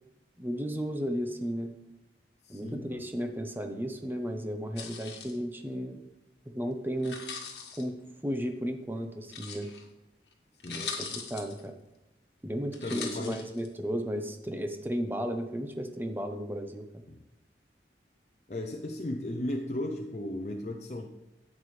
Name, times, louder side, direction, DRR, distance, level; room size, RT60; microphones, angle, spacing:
voice 1, 0.4-1.7 2.5-6.0 6.5-7.2 7.8-7.9 8.2-9.7 10.7-11.7 12.4-16.8, equal, 10° right, 5 dB, 0.8 m, -34 dB
voice 2, 2.4-3.0 10.6-10.9 12.8-13.5 17.1-17.2 18.5-21.1, left 1 dB, 40° left, 2 dB, 0.6 m, -35 dB
sound 1, 4.8-5.4 7.0-7.8 9.3-9.8 10.3-10.4 10.6-11.6 12.7-13.7, left 6 dB, 75° left, 1.5 m, -40 dB
11.0 x 8.5 x 3.3 m, 0.93 s
head